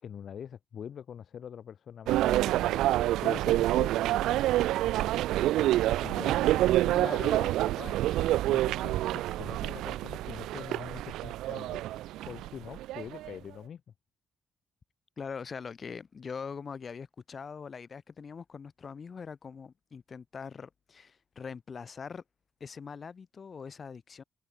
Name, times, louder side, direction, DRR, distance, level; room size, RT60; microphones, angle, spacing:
voice 1, 0.0-2.8 3.2-4.4 6.0-7.0 7.2-8.1 8.5-11.8 12.2-13.8, left 8 dB, 60° left, 5.0 m, -44 dB
sound 1, 2.1-13.3, right 15 dB, 90° right, 2.7 m, -27 dB
voice 2, 6.9-7.4 15.2-22.2 22.6-24.2, left 6 dB, 40° left, 7.9 m, -42 dB
cardioid pair, 90°, 0 cm